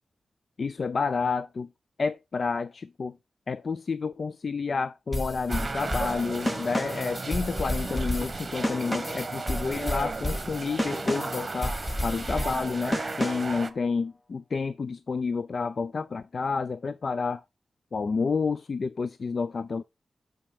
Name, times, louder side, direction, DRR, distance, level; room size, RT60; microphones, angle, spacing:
voice 1, 0.6-1.7 2.0-3.1 3.5-11.7 12.0-17.4 17.9-19.8, left 4 dB, 60° left, 0.4 m, -30 dB
sound 1, 5.1-13.6, left 1 dB, 25° left, 1.8 m, -31 dB
sound 2, 5.5-13.7, right 3 dB, 45° right, 1.0 m, -35 dB
7.0 x 5.4 x 4.9 m
cardioid pair, 55°, 0 cm